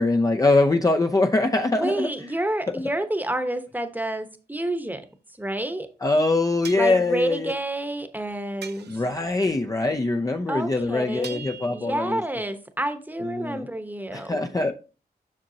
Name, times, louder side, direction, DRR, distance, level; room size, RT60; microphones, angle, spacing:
voice 1, 0.0-2.1 6.0-7.5 8.9-12.2 13.2-13.7 14.1-14.7, left 2 dB, 20° left, 0.5 m, -23 dB
voice 2, 1.7-5.0 5.4-5.9 6.8-8.9 10.5-11.4 11.7-14.3, right 1 dB, 10° right, 1.0 m, -29 dB
sound 1, 4.8-4.9 6.6-7.1 8.6-9.2 11.2-12.1, right 7 dB, 80° right, 0.6 m, -41 dB
7.6 x 6.0 x 2.8 m
cardioid pair, 80°, 17 cm